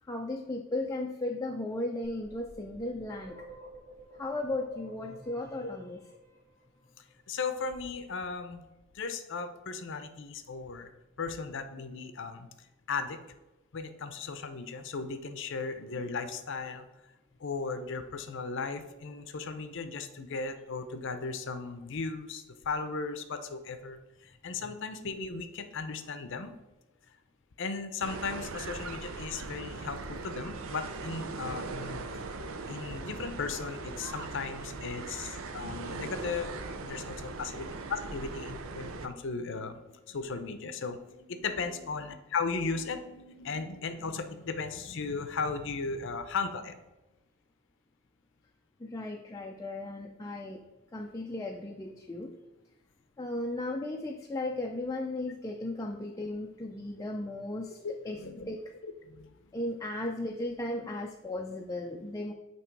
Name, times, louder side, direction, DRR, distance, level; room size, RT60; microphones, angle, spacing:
voice 1, 0.1-3.5 4.2-6.0 24.6-24.7 48.8-50.6 50.9-52.3 53.2-57.8 58.0-58.6 59.5-62.3, left 2 dB, 15° left, 2 dB, 0.4 m, -36 dB
sound 1, 2.0-6.9, right 1 dB, 45° right, 2.0 m, -52 dB
voice 2, 7.3-8.6 8.9-10.9 11.2-12.5 12.9-13.2 13.7-16.9 17.4-26.6 27.6-32.1 32.7-36.5 36.8-46.8 57.8-58.5 58.8-59.3, left 4 dB, 65° left, 9 dB, 0.6 m, -36 dB
sound 2, 28.0-39.1, right 3 dB, 75° right, 0.6 m, -40 dB
8.9 x 3.0 x 4.6 m, 1.1 s
head